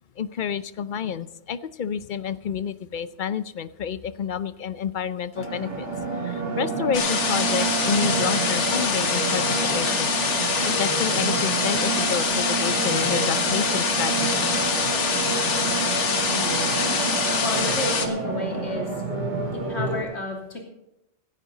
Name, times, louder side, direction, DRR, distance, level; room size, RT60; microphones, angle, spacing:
voice 1, 0.2-5.9 6.2-9.4 9.7-10.1 10.8-14.5, left 7 dB, 50° left, 15 dB, 0.7 m, -29 dB
sound 1, 5.3-20.0, right 4 dB, 40° right, 2.6 m, -29 dB
sound 2, 6.9-18.1, left 5 dB, 85° left, 1.7 m, -24 dB
voice 2, 16.2-16.7 17.4-18.9 19.5-20.6, left 2 dB, 70° left, 0 dB, 3.5 m, -32 dB
16.5 x 12.0 x 4.0 m, 0.88 s
omnidirectional pair, 1.2 m